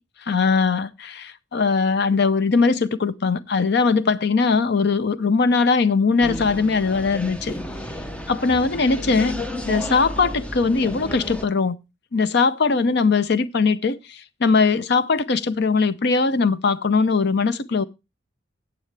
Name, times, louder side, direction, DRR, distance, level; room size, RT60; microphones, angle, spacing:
voice 1, 0.3-7.6 8.3-9.3 9.6-11.8 12.1-17.8, left 4 dB, 55° left, 0.6 m, -20 dB
sound 1, 6.2-11.5, left 1 dB, 5° left, 0.7 m, -32 dB
14.0 x 8.5 x 3.3 m
head